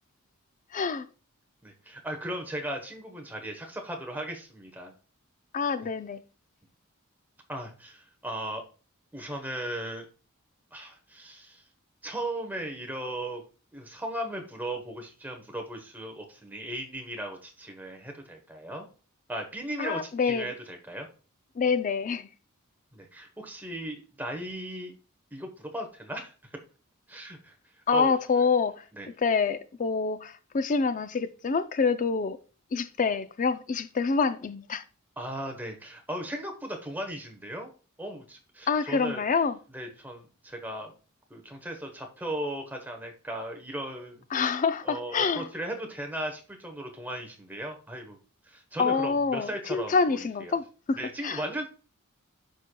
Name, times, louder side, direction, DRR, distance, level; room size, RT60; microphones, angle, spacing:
voice 1, 0.7-1.1 5.5-6.2 19.8-20.5 21.6-22.3 27.9-28.8 29.2-32.4 32.7-34.8 38.7-39.6 44.3-45.5 48.8-51.0 51.2-51.4, left 5 dB, 40° left, 0.4 m, -26 dB
voice 2, 1.6-4.9 7.5-8.6 9.1-10.1 10.7-11.6 12.0-13.4 13.7-18.9 19.3-21.1 22.9-24.9 25.3-26.3 27.1-27.5 27.9-28.4 28.9-29.1 35.2-37.7 38.0-39.2 39.7-40.9 41.3-44.5 44.8-48.2 48.4-50.6 50.9-51.7, right 1 dB, 10° right, 1.1 m, -37 dB
11.5 x 4.4 x 2.3 m
head